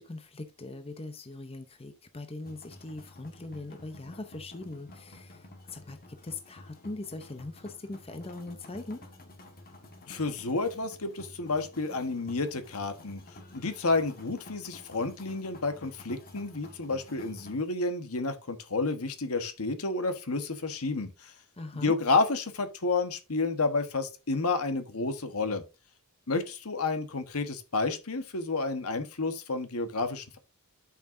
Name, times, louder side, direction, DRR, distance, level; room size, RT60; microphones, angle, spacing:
voice 1, 0.0-9.0 21.5-22.0, left 2 dB, 25° left, 0.8 m, -41 dB
sound 1, 2.4-17.6, left 1 dB, 40° left, 1.6 m, -51 dB
voice 2, 10.1-13.2 13.5-21.3 21.8-25.6 26.3-30.4, left 3 dB, 70° left, 1.4 m, -30 dB
11.0 x 5.8 x 2.7 m
head